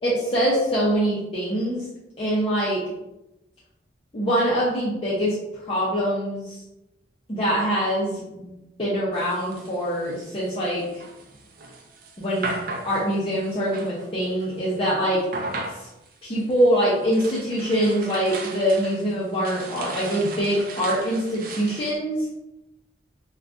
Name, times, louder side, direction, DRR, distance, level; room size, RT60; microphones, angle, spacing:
voice 1, 0.0-1.9 2.2-2.8 4.1-6.6 7.3-8.5 8.8-10.8 12.2-12.5 12.8-15.2 15.8-15.9 16.2-22.2, equal, 30° left, -8 dB, 0.6 m, -24 dB
sound 1, 9.1-14.8 15.2-21.9, right 3 dB, 50° right, 0.4 m, -37 dB
2.4 x 2.2 x 3.5 m, 0.92 s
head